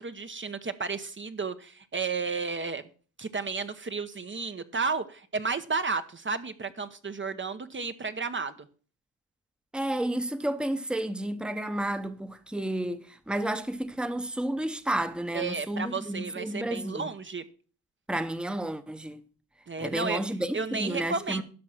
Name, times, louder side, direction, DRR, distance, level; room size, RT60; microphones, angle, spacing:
voice 1, 0.0-2.8 3.2-8.5 15.3-17.4 19.7-20.2 20.5-21.4, right 4 dB, 30° right, 0.9 m, -32 dB
voice 2, 9.7-17.1 18.1-19.2 19.8-21.4, right 1 dB, ahead, 1.0 m, -31 dB
11.5 x 5.9 x 5.8 m
cardioid pair, 70°, 39 cm